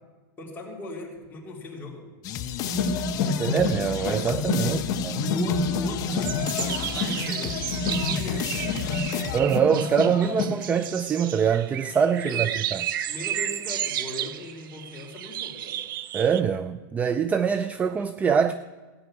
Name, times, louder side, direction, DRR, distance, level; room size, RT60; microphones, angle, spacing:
voice 1, 0.4-2.1 2.7-2.9 3.2-3.5 4.6-4.8 5.2-6.5 6.8-9.0 12.2-12.5 13.1-15.8, left 2 dB, 15° left, 3.1 m, -38 dB
sound 1, 2.2-9.9, left 10 dB, 30° left, 0.8 m, -34 dB
sound 2, 2.6-10.5, left 4 dB, 50° left, 2.0 m, -28 dB
voice 2, 3.4-5.2 9.3-12.8 16.1-18.5, right 7 dB, 15° right, 0.3 m, -24 dB
sound 3, 6.1-16.4, right 11 dB, 70° right, 0.7 m, -33 dB
16.5 x 5.8 x 8.8 m
supercardioid pair, 150°, 11 cm